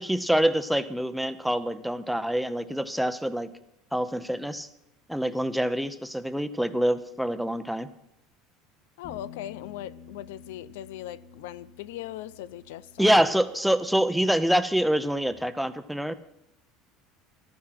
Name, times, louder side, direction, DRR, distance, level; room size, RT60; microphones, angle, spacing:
voice 1, 0.0-3.5 3.9-4.7 5.1-7.9 13.0-16.1, equal, ahead, 0.8 m, -25 dB
voice 2, 9.0-13.2, left 13 dB, 90° left, 0.6 m, -39 dB
Bass guitar, 9.0-15.3, left 6 dB, 60° left, 2.5 m, -50 dB
14.5 x 12.0 x 5.9 m
supercardioid pair, 130°, 0 cm